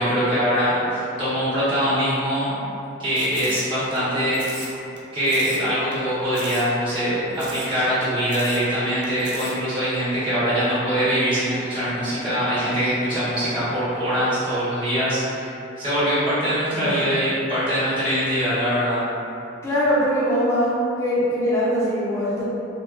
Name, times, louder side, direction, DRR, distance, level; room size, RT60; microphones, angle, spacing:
voice 1, 0.0-2.6 3.0-4.7 5.1-19.0, equal, 25° right, -12 dB, 1.1 m, -23 dB
sound 1, 3.2-4.0 4.3-5.0 5.3-5.7 5.9-6.0 6.3-6.7 7.0-7.1 7.4-7.7 8.0-8.1 8.3-8.6 9.0-9.5, right 4 dB, 55° right, 0.4 m, -37 dB
voice 2, 19.6-20.7 21.0-22.4, equal, 15° left, -9 dB, 0.6 m, -22 dB
3.6 x 2.2 x 2.4 m, 2.7 s
head